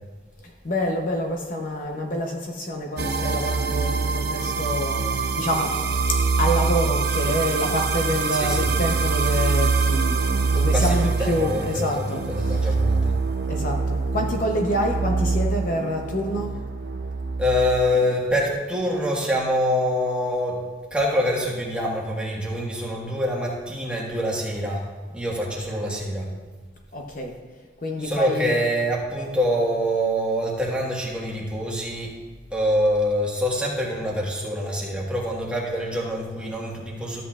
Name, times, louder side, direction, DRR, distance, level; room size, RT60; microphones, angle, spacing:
voice 1, 0.4-5.7 6.4-12.6 13.5-16.5 26.9-27.3 27.8-28.6, equal, 45° left, 2 dB, 0.8 m, -27 dB
sound 1, 3.0-18.1, right 4 dB, 60° right, 0.6 m, -24 dB
voice 2, 8.3-8.7 10.7-13.1 17.4-20.6 20.9-24.8 25.1-26.3 28.0-32.1 32.5-37.2, equal, 5° right, -4 dB, 1.5 m, -25 dB
13.0 x 8.3 x 2.4 m, 1.4 s
head